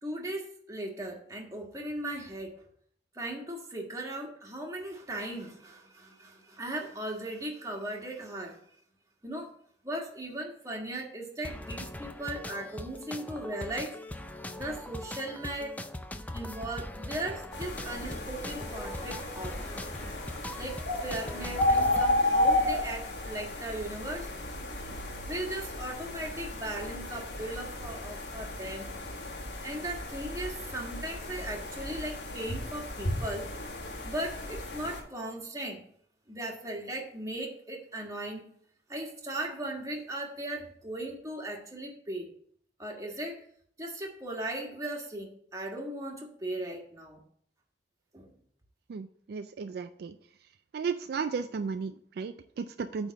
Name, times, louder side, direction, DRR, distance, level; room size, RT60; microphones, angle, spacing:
voice 1, 0.0-2.7 3.1-8.6 9.2-9.5 9.8-14.0 14.6-15.8 16.3-19.6 20.6-24.3 25.3-28.9 29.6-33.5 34.0-35.8 36.3-38.5 38.9-42.3 42.8-43.4 43.8-47.2 48.1-48.3, right 1 dB, 20° right, 0 dB, 1.5 m, -38 dB
sound 1, 11.4-22.1, left 1 dB, 10° left, 0.4 m, -41 dB
sound 2, 17.5-35.0, left 1 dB, 70° left, 1.6 m, -33 dB
voice 2, 48.9-50.2 50.7-53.1, right 5 dB, 60° right, 10 dB, 0.3 m, -34 dB
8.8 x 3.5 x 6.3 m, 0.62 s
head